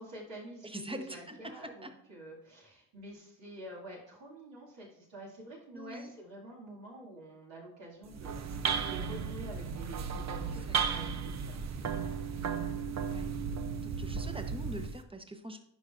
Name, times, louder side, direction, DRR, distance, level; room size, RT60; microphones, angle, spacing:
voice 1, 0.0-8.4 8.8-12.1, right 1 dB, 65° right, -4 dB, 2.3 m, -48 dB
voice 2, 0.6-1.9 5.7-6.1 10.7-10.8 13.1-13.3 13.8-15.6, right 1 dB, 10° right, 7 dB, 0.9 m, -43 dB
sound 1, 8.0-15.0, right 6 dB, 35° right, 0.6 m, -35 dB
10.0 x 4.8 x 2.5 m, 0.73 s
hypercardioid pair, 45°, 47 cm